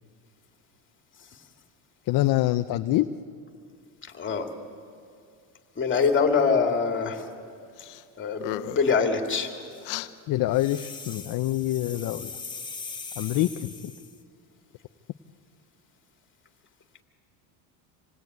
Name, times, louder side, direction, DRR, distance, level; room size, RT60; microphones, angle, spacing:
voice 1, 2.1-3.1 10.3-12.3 13.2-13.9, left 15 dB, 45° left, 8 dB, 0.7 m, -25 dB
voice 2, 5.8-7.2 8.2-9.5, left 5 dB, 25° left, 4 dB, 2.5 m, -24 dB
sound 1, 7.8-8.0 8.3-9.0 9.8-10.1, left 14 dB, 70° left, 1.0 m, -34 dB
sound 2, 10.5-14.2, left 4 dB, 10° left, 1.5 m, -40 dB
26.5 x 19.0 x 9.5 m, 2.4 s
cardioid pair, 125°, 45 cm